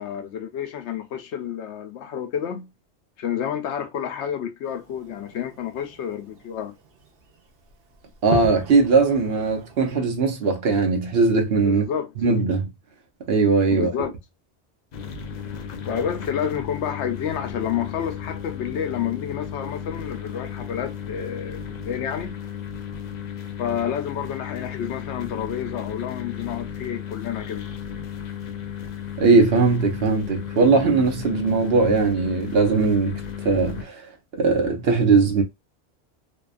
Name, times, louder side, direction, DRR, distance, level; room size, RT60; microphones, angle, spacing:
voice 1, 0.0-2.7 3.2-6.8 11.6-12.1 13.7-14.1 15.8-22.4 23.6-27.7, left 8 dB, 80° left, 0.9 m, -29 dB
Fireworks, 4.6-10.0, right 5 dB, 85° right, 1.0 m, -38 dB
voice 2, 8.2-11.8 12.2-12.7 13.3-13.9 29.2-33.2 33.4-34.0 34.3-35.4, right 4 dB, 65° right, 1.0 m, -19 dB
sound 1, 14.9-33.8, left 8 dB, 55° left, 0.5 m, -34 dB
2.7 x 2.3 x 2.3 m
omnidirectional pair, 1.1 m